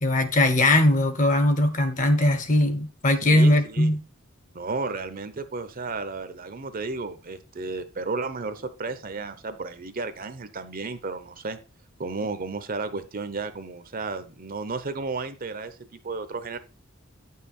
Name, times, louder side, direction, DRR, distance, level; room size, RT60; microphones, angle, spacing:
voice 1, 0.0-4.0, left 1 dB, 40° left, 1.1 m, -20 dB
voice 2, 3.2-3.9 4.5-11.6 12.0-16.6, right 3 dB, 45° right, 0.8 m, -33 dB
9.2 x 5.7 x 4.3 m
head